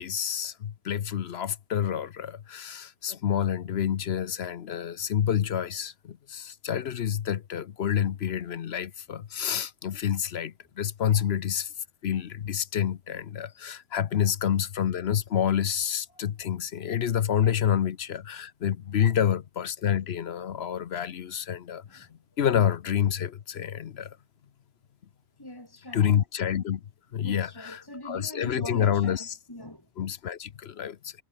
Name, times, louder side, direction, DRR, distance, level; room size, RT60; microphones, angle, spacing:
voice 1, 0.0-11.7 12.0-22.1 22.4-24.2 25.9-26.8 27.1-29.3 30.0-31.1, left 9 dB, 65° left, 1.0 m, -28 dB
voice 2, 25.4-26.1 27.2-29.8, left 1 dB, 20° left, 3.2 m, -42 dB
omnidirectional pair, 1.2 m